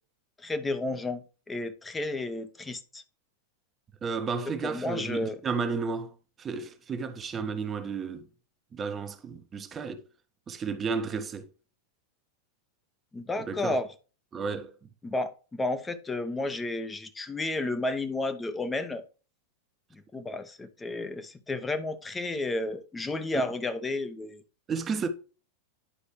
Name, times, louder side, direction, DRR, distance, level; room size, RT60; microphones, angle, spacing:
voice 1, 0.4-3.0 4.6-5.4 13.1-13.9 15.0-19.0 19.9-24.4, left 2 dB, 10° left, 0.9 m, -32 dB
voice 2, 4.0-8.3 8.7-10.0 10.5-11.5 13.4-13.8 14.3-14.7 23.3-23.5 24.7-25.1, right 5 dB, 20° right, 1.0 m, -32 dB
10.0 x 5.3 x 3.1 m
figure-of-eight pair, 90°, 0 cm